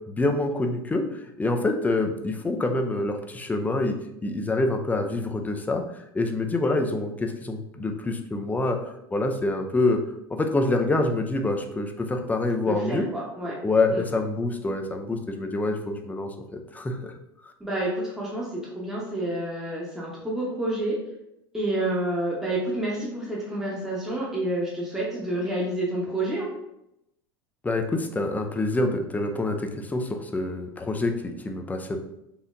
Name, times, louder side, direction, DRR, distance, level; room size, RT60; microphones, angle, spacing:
voice 1, 0.1-5.8 6.1-10.0 10.3-13.1 13.6-17.1 27.6-32.0, left 2 dB, 15° left, 4 dB, 0.5 m, -26 dB
voice 2, 12.7-13.6 13.9-14.0 17.6-21.0 21.5-26.5, right 1 dB, 5° right, -5 dB, 1.0 m, -29 dB
4.2 x 2.7 x 2.5 m, 0.84 s
hypercardioid pair, 90°, 12 cm